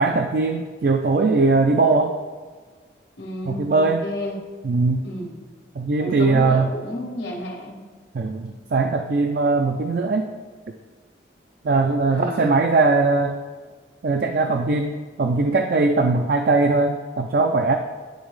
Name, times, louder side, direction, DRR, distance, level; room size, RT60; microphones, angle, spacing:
voice 1, 0.0-2.1 3.5-4.1 4.6-5.1 5.8-6.7 8.1-10.3 11.6-13.4 14.0-17.8, right 3 dB, 55° right, 5 dB, 0.3 m, -20 dB
voice 2, 3.2-4.3 5.0-5.3 6.0-7.8 12.1-12.5, left 1 dB, 80° left, -1 dB, 1.5 m, -31 dB
10.5 x 3.9 x 3.1 m, 1.5 s
head